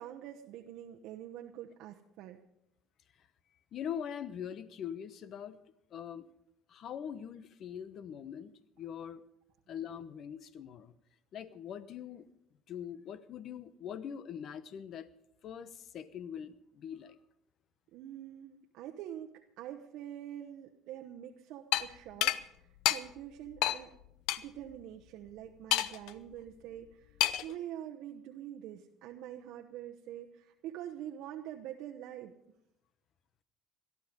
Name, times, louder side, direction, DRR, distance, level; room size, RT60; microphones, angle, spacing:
voice 1, 0.0-2.4 17.9-23.9 24.4-32.3, right 11 dB, 70° right, 2 dB, 0.9 m, -45 dB
voice 2, 3.7-5.6 5.9-6.3 6.7-9.2 9.7-10.9 11.3-12.3 12.7-15.1 15.4-17.2, left 8 dB, 55° left, 15 dB, 0.9 m, -42 dB
sound 1, 21.7-21.8 22.2-22.4 22.8-23.0 23.6-23.8 24.3-24.4 25.7-26.1 27.2-27.5, left 14 dB, 75° left, 0.6 m, -28 dB
18.0 x 12.0 x 5.2 m, 0.81 s
supercardioid pair, 90°, 0 cm